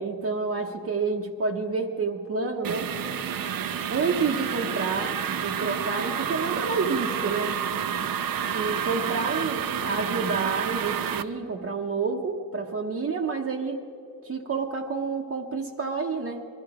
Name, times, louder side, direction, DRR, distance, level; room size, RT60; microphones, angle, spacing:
voice 1, 0.0-2.9 3.9-7.6 8.5-13.8 14.2-16.5, right 4 dB, 40° right, 0 dB, 0.9 m, -29 dB
sound 1, 2.6-11.2, right 8 dB, 65° right, 0.7 m, -29 dB
21.0 x 13.0 x 4.9 m, 2.8 s
wide cardioid pair, 115°, 37 cm